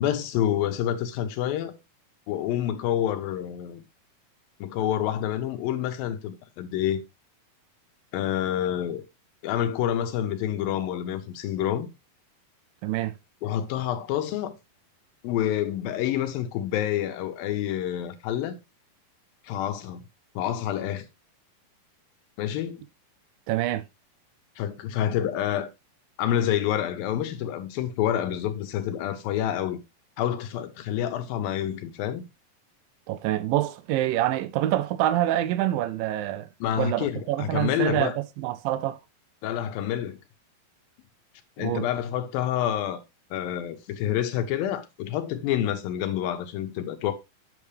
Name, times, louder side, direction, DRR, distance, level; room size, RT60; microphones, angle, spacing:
voice 1, 0.0-1.8 2.3-3.8 4.6-7.0 8.1-9.0 9.4-11.9 13.4-14.6 15.2-18.6 19.4-20.0 20.4-21.1 22.4-22.8 24.6-25.7 26.2-29.8 30.2-32.2 36.6-38.2 39.4-40.2 41.6-43.0 43.3-47.1, left 11 dB, 80° left, 2.7 m, -28 dB
voice 2, 12.8-13.1 23.5-23.8 33.1-36.5 36.8-39.0 41.6-41.9, right 13 dB, 80° right, 2.2 m, -26 dB
8.6 x 6.5 x 3.3 m
omnidirectional pair, 4.1 m